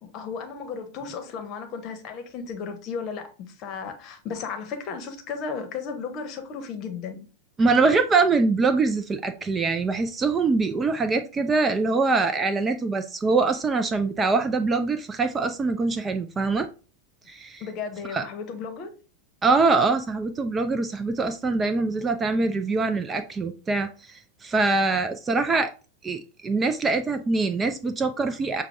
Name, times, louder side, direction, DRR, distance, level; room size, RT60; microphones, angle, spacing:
voice 1, 0.0-7.3 17.6-18.9, left 5 dB, 35° left, 0.9 m, -34 dB
voice 2, 7.6-16.7 17.3-17.6 18.1-18.2 19.4-25.7 26.0-28.6, right 3 dB, 20° right, 0.4 m, -23 dB
5.9 x 2.2 x 3.3 m
figure-of-eight pair, 90°, 0 cm